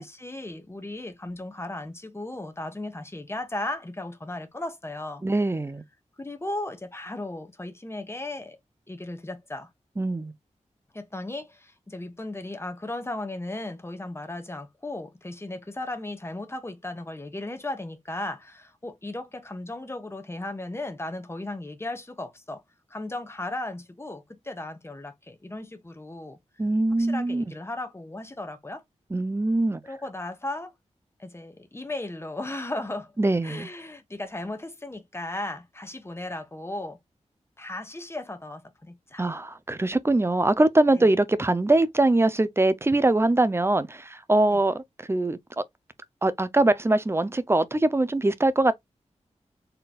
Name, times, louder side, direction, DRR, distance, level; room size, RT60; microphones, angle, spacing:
voice 1, 0.0-5.2 6.2-8.6 8.9-9.7 10.9-22.6 22.9-26.4 27.0-28.8 29.8-30.7 31.2-33.1 33.4-37.0 37.6-39.3 40.9-41.1 44.5-44.6, left 2 dB, 20° left, 1.2 m, -36 dB
voice 2, 5.2-5.8 10.0-10.3 26.6-27.4 29.1-29.8 33.2-33.7 39.2-44.8 45.1-45.6 46.2-48.7, right 2 dB, 20° right, 0.6 m, -22 dB
4.5 x 3.9 x 2.4 m
wide cardioid pair, 75°, 12 cm